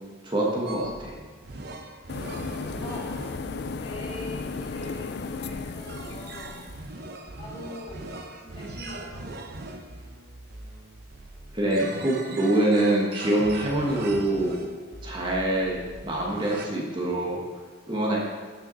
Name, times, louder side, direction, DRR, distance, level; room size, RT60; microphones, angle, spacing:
voice 1, 0.2-1.1 11.5-14.6 15.0-17.4 17.9-18.2, right 1 dB, 25° right, -3 dB, 1.5 m, -25 dB
sound 1, 0.7-16.7, right 2 dB, 55° right, 0.8 m, -41 dB
sound 2, 2.1-6.9, left 4 dB, 55° left, 0.4 m, -35 dB
voice 2, 2.7-3.2 3.8-6.7 7.4-8.1 8.4-9.5, left 1 dB, 25° left, -7 dB, 2.9 m, -42 dB
12.0 x 6.1 x 4.0 m, 1.5 s
head